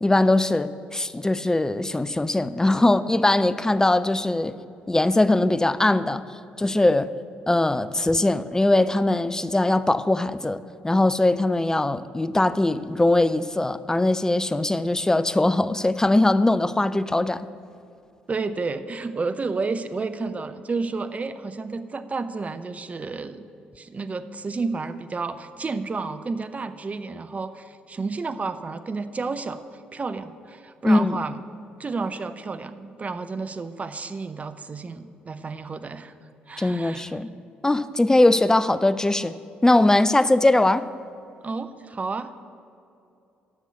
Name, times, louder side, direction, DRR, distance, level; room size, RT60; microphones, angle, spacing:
voice 1, 0.0-4.6 4.9-6.2 6.6-7.1 7.5-17.5 30.8-31.2 36.6-37.3 37.6-39.3 39.6-40.9, left 2 dB, 15° left, 15 dB, 0.4 m, -21 dB
voice 2, 18.3-23.4 23.8-31.4 31.8-36.1 36.5-37.2 41.4-42.3, right 4 dB, 30° right, 11 dB, 0.6 m, -31 dB
11.0 x 6.3 x 6.8 m, 2.6 s
figure-of-eight pair, 45°, 5 cm